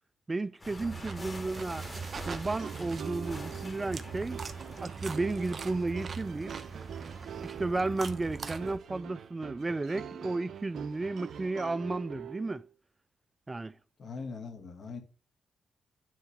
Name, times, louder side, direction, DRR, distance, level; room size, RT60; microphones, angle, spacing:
voice 1, 0.3-1.9 2.3-4.4 4.8-6.5 7.4-12.6 13.5-13.7, right 3 dB, 25° right, 0.3 m, -33 dB
sound 1, 0.6-7.4, left 2 dB, 30° left, 2.6 m, -48 dB
sound 2, 0.8-8.8, right 5 dB, 45° right, 0.9 m, -41 dB
sound 3, 2.3-12.7, right 9 dB, 75° right, 0.6 m, -45 dB
voice 2, 14.0-15.0, left 4 dB, 60° left, 2.2 m, -41 dB
9.4 x 3.8 x 7.0 m
cardioid pair, 75°, 0 cm